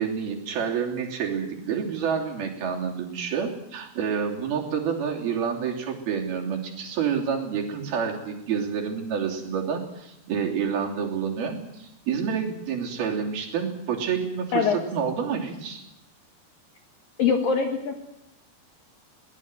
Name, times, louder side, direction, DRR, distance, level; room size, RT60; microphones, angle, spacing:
voice 1, 0.0-15.8, right 7 dB, 65° right, 0 dB, 4.9 m, -28 dB
voice 2, 17.2-18.0, left 6 dB, 65° left, 4 dB, 3.0 m, -23 dB
23.0 x 19.0 x 7.9 m, 0.83 s
omnidirectional pair, 4.8 m